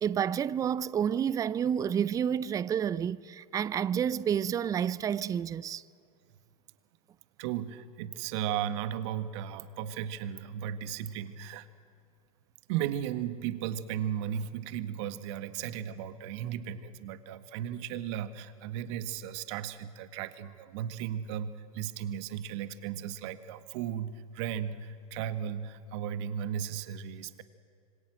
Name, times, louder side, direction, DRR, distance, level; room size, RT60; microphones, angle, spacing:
voice 1, 0.0-5.8, right 8 dB, 20° right, 0.6 m, -29 dB
voice 2, 7.4-11.7 12.7-27.4, right 9 dB, 50° right, 1.7 m, -35 dB
27.0 x 25.5 x 7.8 m
figure-of-eight pair, 95°, 19 cm